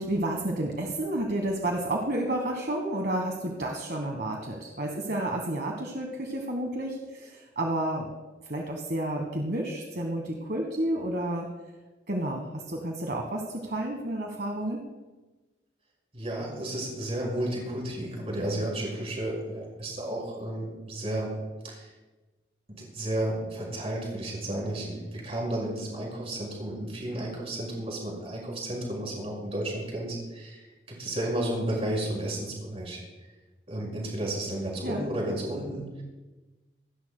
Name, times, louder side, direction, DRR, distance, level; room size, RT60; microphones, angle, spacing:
voice 1, 0.0-8.1 8.4-11.5 12.1-14.8 34.8-35.0, right 1 dB, 60° right, 1 dB, 1.4 m, -31 dB
voice 2, 16.1-21.3 21.6-21.9 22.7-33.0 33.7-36.0, right 1 dB, 35° right, -2 dB, 5.5 m, -32 dB
26.5 x 13.0 x 2.2 m, 1.2 s
head